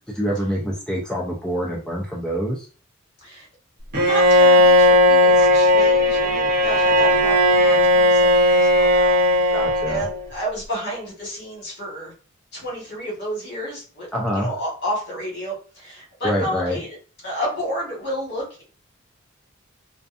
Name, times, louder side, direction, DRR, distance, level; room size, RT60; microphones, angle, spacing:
voice 1, 0.1-2.7 9.5-10.0 14.1-14.5 16.2-16.8, equal, 5° left, -4 dB, 0.4 m, -25 dB
voice 2, 3.9-12.1 12.5-17.0 17.2-18.6, equal, 55° left, -3 dB, 1.4 m, -31 dB
Bowed string instrument, 3.9-10.2, left 1 dB, 45° right, 0.8 m, -16 dB
2.5 x 2.3 x 2.4 m, 0.38 s
head